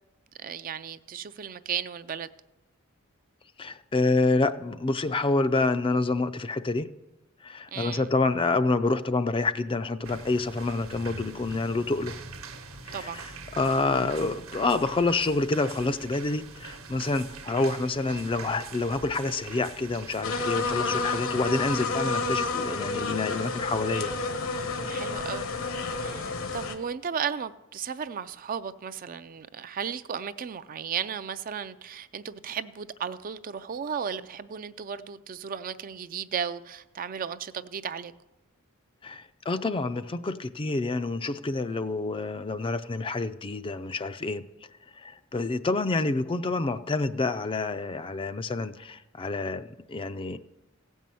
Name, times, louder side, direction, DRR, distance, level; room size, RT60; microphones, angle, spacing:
voice 1, 0.4-2.3 7.7-8.0 12.9-13.2 24.9-25.5 26.0-38.1, right 7 dB, 40° right, 0.4 m, -35 dB
voice 2, 3.6-6.9 7.4-12.2 12.9-24.1 39.0-44.4 45.0-50.4, left 3 dB, 25° left, 0.4 m, -28 dB
sound 1, 10.0-20.2, right 4 dB, 75° right, 1.1 m, -43 dB
sound 2, 20.2-26.8, left 3 dB, 70° left, 1.2 m, -30 dB
16.5 x 5.5 x 7.6 m
head